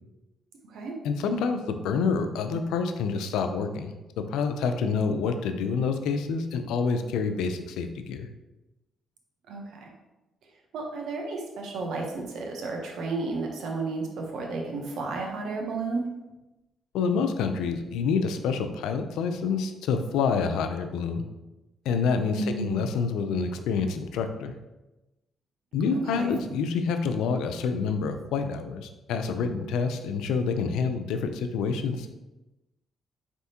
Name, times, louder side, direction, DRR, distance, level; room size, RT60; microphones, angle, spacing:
voice 1, 1.0-8.3 16.9-21.2 21.9-24.5 25.7-32.1, left 5 dB, 90° left, 8 dB, 0.4 m, -27 dB
voice 2, 9.5-9.9 10.7-16.1 22.3-22.9 25.9-26.4, right 3 dB, 75° right, 1 dB, 0.8 m, -32 dB
4.2 x 3.5 x 2.8 m, 1.0 s
cardioid pair, 90°, 0 cm